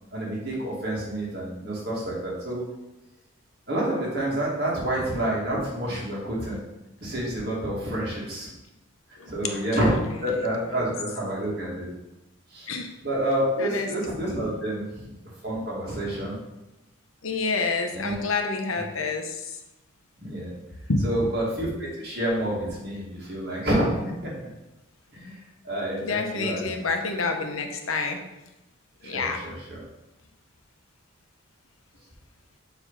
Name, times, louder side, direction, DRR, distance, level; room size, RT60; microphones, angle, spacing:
voice 1, 0.1-2.6 3.7-6.6 7.0-8.5 9.3-9.9 10.2-11.9 12.5-12.7 13.0-15.0 15.4-16.4 17.9-18.1 20.2-20.5 21.0-23.9 24.2-24.3 25.1-26.7 29.0-29.8, right 1 dB, 50° right, -5 dB, 2.4 m, -28 dB
voice 2, 9.2-9.6 10.4-10.9 12.7-12.9 13.6-13.9 14.2-14.4 17.2-19.6 20.9-21.0 26.0-28.2 29.0-29.5, left 3 dB, 85° left, 4 dB, 0.9 m, -28 dB
7.1 x 3.4 x 5.7 m, 0.97 s
head